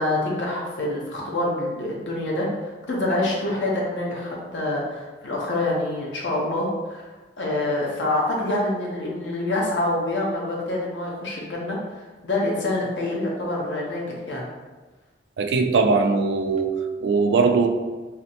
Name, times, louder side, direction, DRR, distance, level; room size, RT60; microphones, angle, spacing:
voice 1, 0.0-7.1 7.4-14.4, left 1 dB, 85° left, -3 dB, 0.8 m, -26 dB
voice 2, 15.4-17.7, right 4 dB, 75° right, 6 dB, 0.3 m, -20 dB
4.0 x 2.0 x 2.8 m, 1.3 s
head